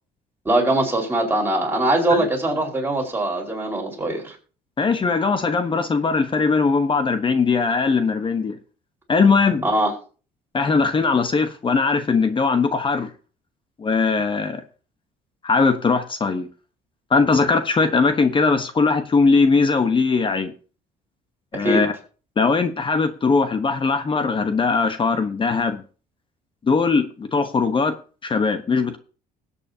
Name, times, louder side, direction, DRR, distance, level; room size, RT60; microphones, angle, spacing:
voice 1, 0.4-4.4 9.6-9.9 21.5-21.8, right 1 dB, 15° right, 4.7 m, -22 dB
voice 2, 4.8-8.6 9.1-9.6 10.5-13.1 13.8-14.6 15.4-16.5 17.1-20.5 21.5-21.9 22.4-25.8 26.6-28.0 28.2-29.0, left 4 dB, 30° left, 1.1 m, -20 dB
20.0 x 8.5 x 2.8 m
cardioid pair, 110°, 17 cm